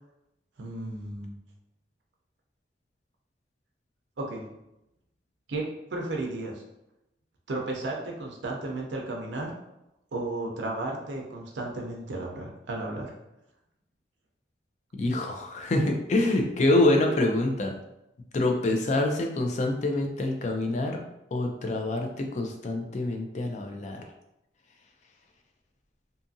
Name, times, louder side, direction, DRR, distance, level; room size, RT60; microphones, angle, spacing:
voice 1, 0.6-1.3 4.2-4.4 5.5-5.6 5.9-6.6 7.5-9.5 10.1-13.1, right 2 dB, 70° right, 0 dB, 0.5 m, -33 dB
voice 2, 15.0-17.7 18.3-21.0 21.3-24.0, left 2 dB, 40° left, 3 dB, 0.4 m, -26 dB
2.7 x 2.4 x 2.6 m, 0.87 s
head